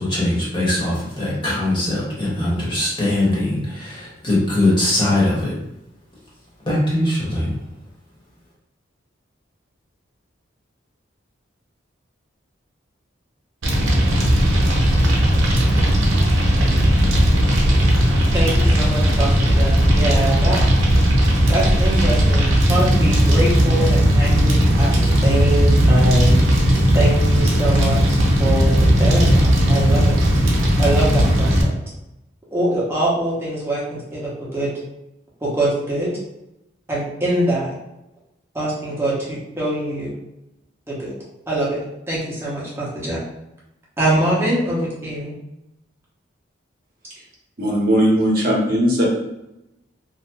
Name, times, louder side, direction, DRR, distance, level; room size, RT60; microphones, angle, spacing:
voice 1, 0.0-5.5 6.6-7.6, left 1 dB, 25° left, -7 dB, 1.0 m, -21 dB
Fire, 13.6-31.6, equal, 85° right, 0.7 m, -16 dB
voice 2, 18.3-20.6 21.5-26.4 26.9-28.0 28.4-30.2 30.8-31.8 32.5-34.7 35.4-36.1 36.9-37.7 38.5-40.1 40.9-41.1 41.5-41.8 42.1-43.2 44.0-45.3, right 1 dB, 15° right, -7 dB, 0.8 m, -23 dB
voice 3, 47.6-49.0, equal, 50° right, -4 dB, 0.8 m, -18 dB
2.8 x 2.0 x 3.3 m, 0.89 s
head